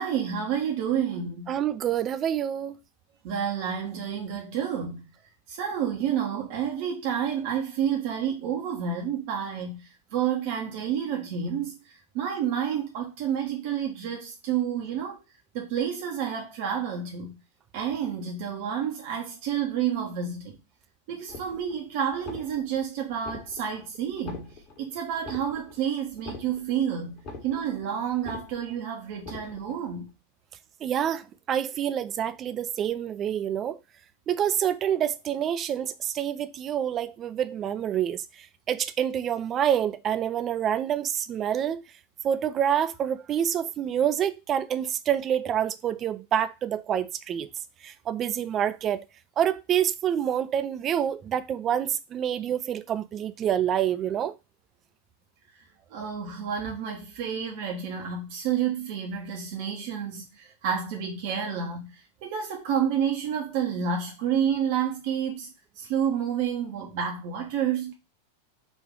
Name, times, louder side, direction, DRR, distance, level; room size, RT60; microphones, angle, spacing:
voice 1, 0.0-1.5 3.2-5.0 5.5-15.3 15.5-17.4 17.7-20.6 21.1-24.5 24.8-27.2 27.4-30.1 55.9-67.9, right 8 dB, 50° right, 0.9 m, -29 dB
voice 2, 1.5-2.8 30.8-33.8 34.3-38.2 38.7-41.8 42.2-47.5 47.8-49.0 49.4-54.3, right 9 dB, 30° right, 0.4 m, -27 dB
sound 1, 21.3-21.8 22.1-22.8 23.2-23.8 24.1-24.8 25.2-25.8 26.1-26.8 27.1-27.8 28.1-28.8 29.2-29.8, left 3 dB, 40° left, 1.5 m, -42 dB
4.1 x 2.6 x 4.7 m
figure-of-eight pair, 90°, 0 cm